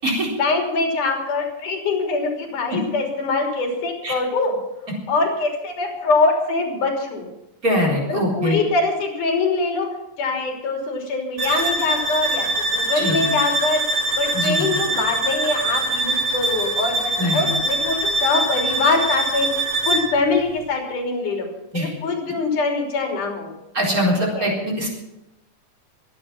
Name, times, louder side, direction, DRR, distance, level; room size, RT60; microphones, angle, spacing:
voice 1, 0.4-4.6 5.1-7.3 8.1-9.9 10.2-13.8 14.2-19.5 19.9-21.4 21.7-23.5 24.4-24.5, left 3 dB, 65° left, 1 dB, 4.8 m, -23 dB
voice 2, 7.6-8.6 12.9-13.2 14.3-14.7 17.2-17.5 21.7-21.9 23.7-24.9, equal, 25° right, -2 dB, 4.4 m, -22 dB
sound 1, 11.4-20.2, right 2 dB, 50° right, 3.9 m, -23 dB
23.5 x 8.7 x 5.9 m, 0.91 s
omnidirectional pair, 3.9 m